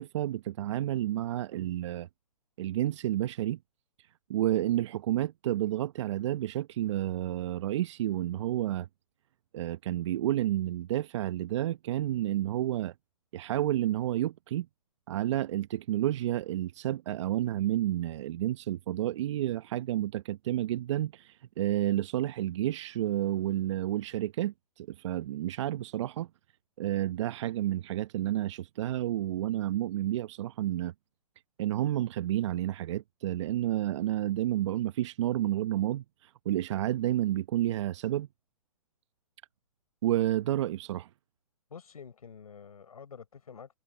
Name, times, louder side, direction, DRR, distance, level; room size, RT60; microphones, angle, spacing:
voice 1, 0.0-2.1 2.6-3.6 4.0-8.9 9.5-12.9 13.3-14.7 15.1-26.3 26.8-30.9 31.6-38.3 40.0-41.1, right 13 dB, 50° right, 0.9 m, -30 dB
voice 2, 41.7-43.7, left 6 dB, 75° left, 6.8 m, -48 dB
hypercardioid pair, 130°, 19 cm